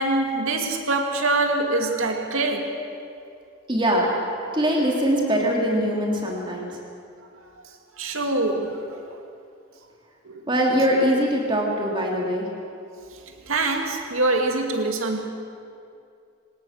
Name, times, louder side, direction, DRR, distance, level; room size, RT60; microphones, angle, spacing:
voice 1, 0.0-2.7 4.4-4.6 7.6-9.0 10.2-10.4 13.0-15.3, right 2 dB, 80° right, 3 dB, 2.5 m, -25 dB
voice 2, 3.7-4.1 4.5-6.8 10.5-12.5, equal, 25° right, -2 dB, 3.0 m, -22 dB
25.0 x 19.0 x 6.6 m, 2.5 s
head